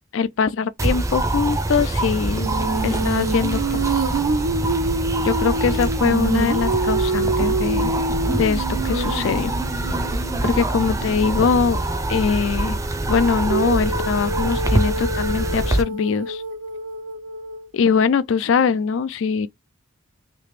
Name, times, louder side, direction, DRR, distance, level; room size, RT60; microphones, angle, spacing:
voice 1, 0.1-2.5 2.8-3.8 5.2-7.9 8.3-9.5 10.4-11.8 12.1-12.8 13.1-16.4 17.7-19.5, left 6 dB, 65° left, 0.3 m, -22 dB
sound 1, 0.8-15.8, right 2 dB, 15° right, 0.5 m, -25 dB
Female singing, 2.4-11.3 13.5-17.7, right 3 dB, 90° right, 0.8 m, -26 dB
3.3 x 2.8 x 3.1 m
head